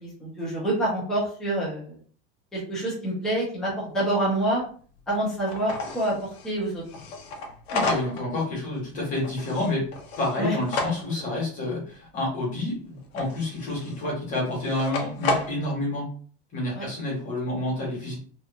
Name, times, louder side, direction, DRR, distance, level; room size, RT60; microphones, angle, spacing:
voice 1, 0.0-2.0 2.5-4.6 5.1-6.8 10.4-10.5 16.7-16.9, right 1 dB, ahead, -7 dB, 0.6 m, -27 dB
sound 1, 3.9-4.0 4.3-4.4 5.0-5.1 5.5-8.4 8.7-11.3 13.0-14.1 14.5-15.6, left 3 dB, 65° left, 0.8 m, -32 dB
voice 2, 7.7-9.9 10.2-16.1 16.5-18.1, left 2 dB, 25° left, -4 dB, 1.3 m, -29 dB
2.9 x 2.4 x 2.5 m, 0.44 s
supercardioid pair, 175°, 33 cm